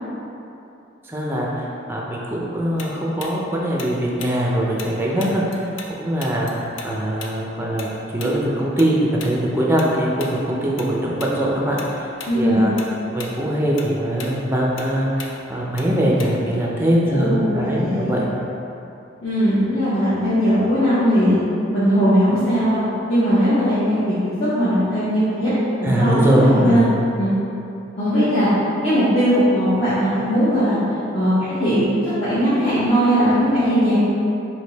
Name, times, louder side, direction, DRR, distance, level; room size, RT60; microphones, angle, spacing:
voice 1, 1.0-5.7 6.0-12.1 12.3-12.7 13.1-18.3 25.8-27.0, right 1 dB, 10° right, -4 dB, 0.4 m, -22 dB
Tick-tock, 2.8-5.9 6.2-10.9 11.2-11.4 11.8-12.4 12.7-16.6, left 4 dB, 80° left, 0.4 m, -37 dB
voice 2, 12.3-12.6 17.1-18.1 19.2-21.4 21.7-22.8 23.1-25.5 25.8-26.8 27.2-27.3 28.0-28.5 28.8-30.8 31.1-31.9 32.2-34.0, equal, 35° left, -15 dB, 0.9 m, -19 dB
3.6 x 2.7 x 4.0 m, 2.9 s
head